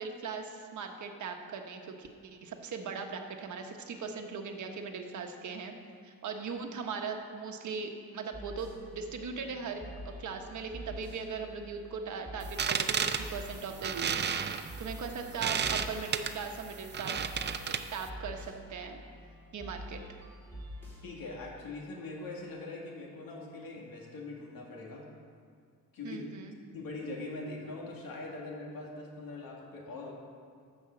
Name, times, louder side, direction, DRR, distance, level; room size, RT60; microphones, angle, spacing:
voice 1, 0.0-5.7 6.0-17.2 17.9-19.0 19.5-20.0 26.0-26.6, right 5 dB, 55° right, 4 dB, 1.2 m, -39 dB
sound 1, 8.3-21.1, equal, 5° left, 3.3 m, -47 dB
sound 2, 12.4-18.1, right 7 dB, 30° right, 0.5 m, -33 dB
voice 2, 21.0-25.1 25.9-26.2 26.7-30.1, left 2 dB, 70° left, -1 dB, 2.3 m, -42 dB
12.5 x 5.4 x 7.6 m, 2.2 s
cardioid pair, 140°, 36 cm